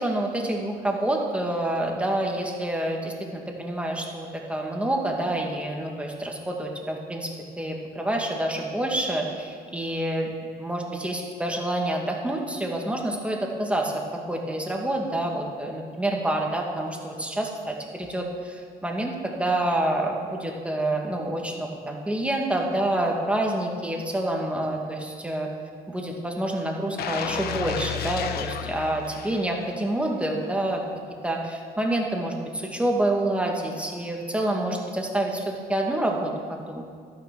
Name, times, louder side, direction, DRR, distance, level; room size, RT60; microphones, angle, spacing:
voice 1, 0.0-7.3 7.6-10.3 10.6-14.0 14.3-25.5 25.9-30.8 31.2-36.8, right 1 dB, 5° right, 0 dB, 2.1 m, -27 dB
sound 1, 27.0-29.9 30.3-30.5, left 9 dB, 70° left, 0.9 m, -33 dB
12.0 x 9.6 x 6.2 m, 2.1 s
cardioid pair, 110°, 17 cm